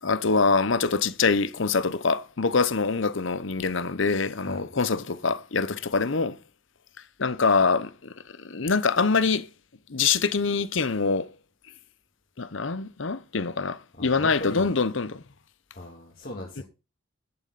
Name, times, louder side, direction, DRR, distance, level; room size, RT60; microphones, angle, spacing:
voice 1, 0.0-6.4 7.2-9.5 9.9-11.3 12.4-15.2 16.6-16.7, left 4 dB, 70° left, 0.9 m, -25 dB
voice 2, 14.0-14.7 15.7-16.6, left 1 dB, 45° left, 2.6 m, -38 dB
11.0 x 9.0 x 4.1 m
head